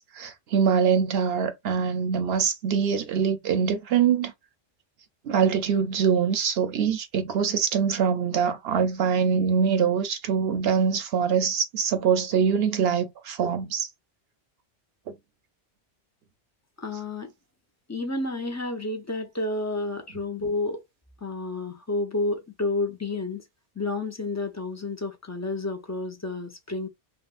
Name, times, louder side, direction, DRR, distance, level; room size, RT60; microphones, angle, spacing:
voice 1, 0.0-4.3 5.2-13.9, right 7 dB, 70° right, 0.9 m, -24 dB
voice 2, 16.8-17.3 17.9-20.8 21.2-23.4 23.8-26.9, left 2 dB, 25° left, 0.4 m, -30 dB
3.5 x 2.2 x 2.5 m
omnidirectional pair, 1.1 m